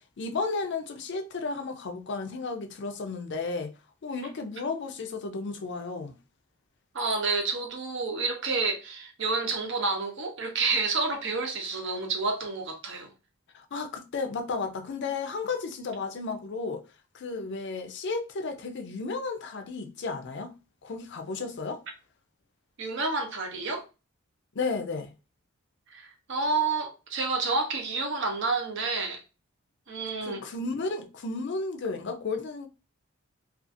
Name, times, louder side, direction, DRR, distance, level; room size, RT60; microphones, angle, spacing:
voice 1, 0.0-3.7 4.0-6.1 13.5-16.8 17.1-20.5 20.8-21.8 24.5-25.1 30.2-32.7, left 4 dB, 55° left, 0.4 m, -33 dB
voice 2, 6.9-13.1 22.8-23.8 25.9-29.2 29.9-30.4, right 3 dB, 60° right, 0.7 m, -29 dB
2.4 x 2.4 x 2.5 m
head